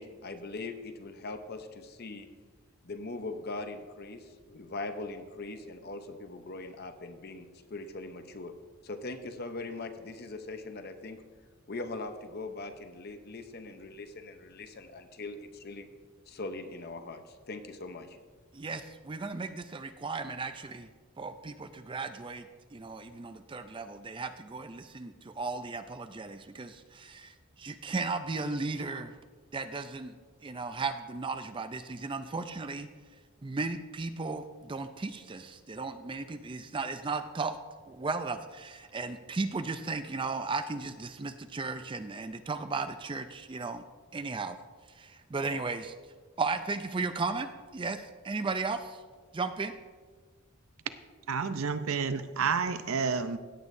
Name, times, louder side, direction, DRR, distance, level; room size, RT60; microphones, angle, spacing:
voice 1, 0.0-2.3 2.8-8.5 8.8-11.2 11.7-15.9 16.3-18.2, left 2 dB, 45° left, 8 dB, 0.7 m, -41 dB
voice 2, 18.5-20.9 21.2-29.1 29.5-30.2 30.4-32.9 33.4-37.6 37.9-43.8 44.1-44.6 45.0-45.9 46.4-49.0 49.3-49.7, right 3 dB, 20° right, 9 dB, 0.4 m, -35 dB
voice 3, 51.3-53.4, right 5 dB, 70° right, 11 dB, 0.6 m, -30 dB
16.5 x 8.3 x 2.6 m, 1.4 s
head